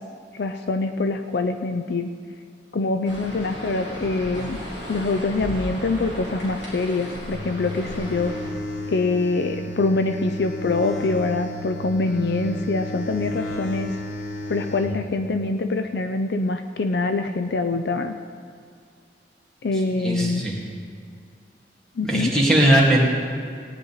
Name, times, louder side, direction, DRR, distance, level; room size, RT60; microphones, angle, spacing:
voice 1, 0.3-2.1 2.7-4.6 4.9-8.4 8.9-13.9 14.5-18.1 19.6-20.4 22.0-22.3, left 3 dB, 60° left, 7 dB, 0.5 m, -24 dB
sound 1, 3.0-8.5, equal, 75° left, 2.7 m, -35 dB
sound 2, 7.3-14.9, equal, 90° left, 1.6 m, -33 dB
voice 2, 20.0-20.6 22.0-23.0, right 1 dB, 5° left, -4 dB, 2.1 m, -19 dB
18.0 x 9.9 x 4.0 m, 2.2 s
head